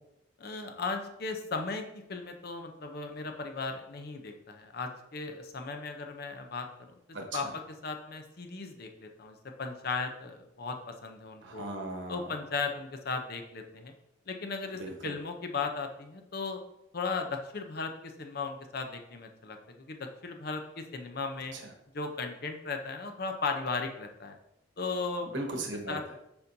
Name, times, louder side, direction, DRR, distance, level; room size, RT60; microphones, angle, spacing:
voice 1, 0.4-6.9 7.3-7.5 7.8-11.7 12.1-13.9 14.3-16.6 16.9-21.5 21.9-24.4 24.8-25.3 25.9-26.2, left 4 dB, 50° left, 5 dB, 0.6 m, -36 dB
voice 2, 7.1-7.5 11.4-12.3 14.8-15.1 21.5-21.6 25.2-26.0, right 2 dB, 65° right, 2 dB, 1.1 m, -37 dB
6.9 x 5.3 x 2.7 m, 0.85 s
head